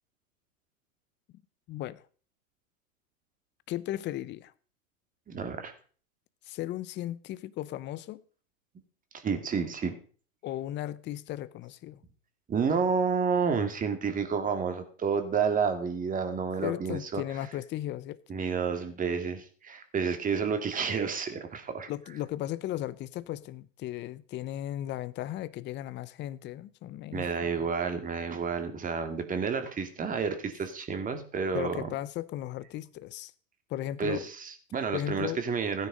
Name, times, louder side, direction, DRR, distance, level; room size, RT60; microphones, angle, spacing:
voice 1, 1.7-2.0 3.7-4.5 6.4-8.2 10.4-12.0 16.6-18.2 21.9-27.6 31.5-33.3 33.7-34.3 34.9-35.4, left 13 dB, 25° left, 0.8 m, -36 dB
voice 2, 5.3-5.7 9.1-9.9 12.5-17.2 18.3-21.9 27.1-31.9 34.0-35.9, right 6 dB, 20° right, 2.4 m, -30 dB
16.0 x 9.9 x 5.1 m
hypercardioid pair, 120°, 42 cm